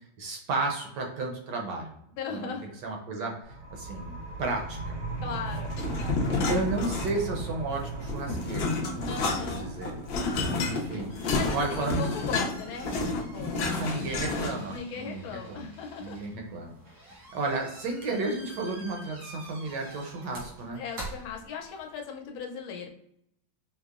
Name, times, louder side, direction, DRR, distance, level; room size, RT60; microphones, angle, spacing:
voice 1, 0.2-2.0 2.3-2.5 2.8-5.0 6.5-10.0 10.6-11.2 11.5-12.1 13.6-15.7 16.0-16.7 17.0-20.8, right 3 dB, 70° right, 2 dB, 1.1 m, -33 dB
voice 2, 2.2-2.7 5.2-6.7 9.1-9.7 10.2-13.7 14.7-16.3 20.7-22.9, left 6 dB, 85° left, 2 dB, 1.4 m, -39 dB
sound 1, 3.4-14.8, right 3 dB, 55° right, 0.7 m, -39 dB
sound 2, 5.7-7.4 7.7-14.8, left 3 dB, 65° left, 1.0 m, -30 dB
sound 3, 10.8-22.0, right 1 dB, 90° right, 2.2 m, -47 dB
5.3 x 2.0 x 2.4 m, 0.74 s
omnidirectional pair, 2.2 m